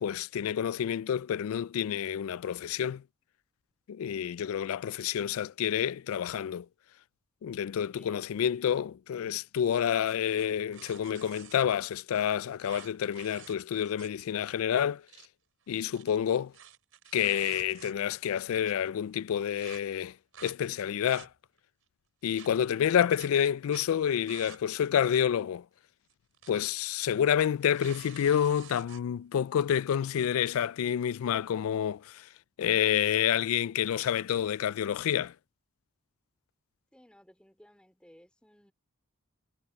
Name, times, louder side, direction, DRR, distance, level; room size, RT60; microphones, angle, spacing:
voice 1, 0.0-3.0 3.9-6.7 7.4-15.0 15.7-16.5 17.1-20.1 20.4-21.3 22.2-25.6 26.5-32.3 32.6-35.3, left 9 dB, 70° left, 0.3 m, -28 dB
voice 2, 7.9-8.7 36.9-38.7, equal, 5° left, 3.0 m, -58 dB
sound 1, 10.0-11.6 12.6-14.2 14.5-14.6 14.9-15.3 15.8-18.2 18.6-18.7 19.6-19.8 20.3-20.6 20.9-21.6 22.4-22.5 23.2-23.3 23.7-23.9 24.3-24.6 24.9-25.0 26.1-26.6 26.9-27.1 27.5-29.0, right 9 dB, 65° right, 5.2 m, -50 dB
head